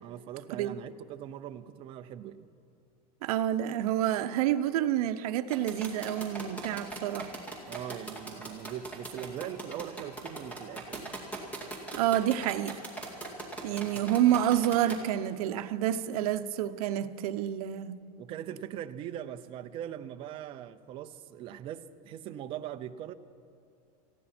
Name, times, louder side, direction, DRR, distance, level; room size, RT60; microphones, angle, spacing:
voice 1, 0.0-2.5 7.7-11.2 13.6-13.9 18.2-23.1, right 10 dB, 25° right, 0.5 m, -41 dB
voice 2, 3.2-7.3 11.9-12.8 13.6-18.0, right 11 dB, 70° right, 0.8 m, -28 dB
sound 1, 5.5-15.0, right 2 dB, 5° left, 2.1 m, -40 dB
19.0 x 15.0 x 4.3 m
supercardioid pair, 170°, 20 cm